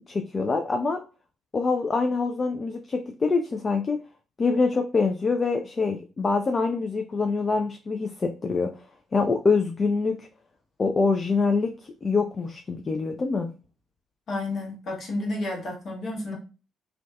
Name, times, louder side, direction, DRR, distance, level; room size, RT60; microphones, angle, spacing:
voice 1, 0.1-1.0 1.5-4.0 4.4-8.7 9.1-10.3 10.8-13.5, left 4 dB, 40° left, 5 dB, 0.3 m, -25 dB
voice 2, 14.3-16.3, left 2 dB, 55° left, -2 dB, 1.0 m, -31 dB
2.5 x 2.2 x 2.3 m, 0.33 s
hypercardioid pair, 45°, 0 cm